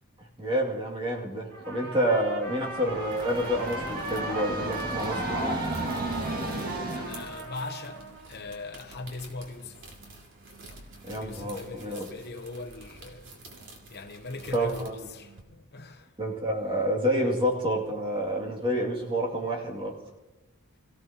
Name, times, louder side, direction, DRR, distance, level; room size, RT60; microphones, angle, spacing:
voice 1, 0.2-5.6 11.0-12.1 14.5-14.9 16.2-20.0, equal, 25° right, 2.4 m, -28 dB
Trumpet, 1.5-8.3, right 2 dB, 85° right, 3.5 m, -38 dB
Train, 2.4-7.4, right 1 dB, 40° right, 1.8 m, -33 dB
sound 1, 2.9-15.4, right 2 dB, 60° right, 2.5 m, -50 dB
voice 2, 6.9-9.8 11.1-13.5 13.9-16.1, left 3 dB, 45° left, 0.9 m, -40 dB
26.5 x 16.0 x 2.9 m
head